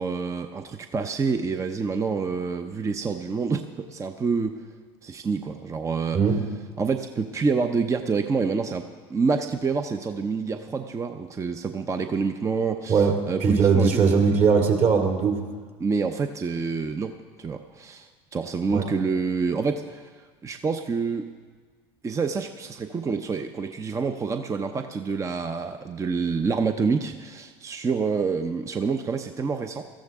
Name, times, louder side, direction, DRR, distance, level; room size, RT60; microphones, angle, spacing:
voice 1, 0.0-4.6 5.0-6.2 6.8-14.0 15.8-20.1 20.4-21.3 22.0-29.8, right 5 dB, 20° right, 7 dB, 0.7 m, -27 dB
voice 2, 12.9-15.4 18.7-18.9, right 5 dB, 50° right, 2 dB, 2.7 m, -20 dB
18.0 x 13.5 x 3.6 m, 1.5 s
supercardioid pair, 100°, 14 cm